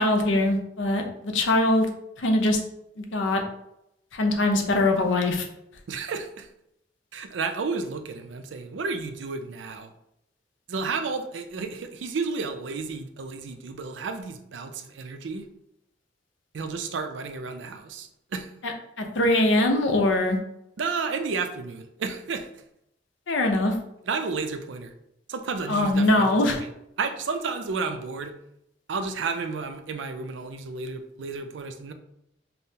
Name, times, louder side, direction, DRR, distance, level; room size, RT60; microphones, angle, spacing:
voice 1, 0.0-1.9 2.2-2.6 3.0-3.4 4.1-5.5 18.6-20.4 23.3-23.7 25.7-26.6, left 1 dB, 90° left, 4 dB, 0.6 m, -22 dB
voice 2, 5.9-6.5 7.1-9.9 10.7-15.5 16.5-18.5 20.8-22.5 24.1-24.9 25.3-26.7 27.0-28.3 28.9-31.9, right 4 dB, 80° right, 7 dB, 0.4 m, -32 dB
5.2 x 2.1 x 2.8 m, 0.81 s
head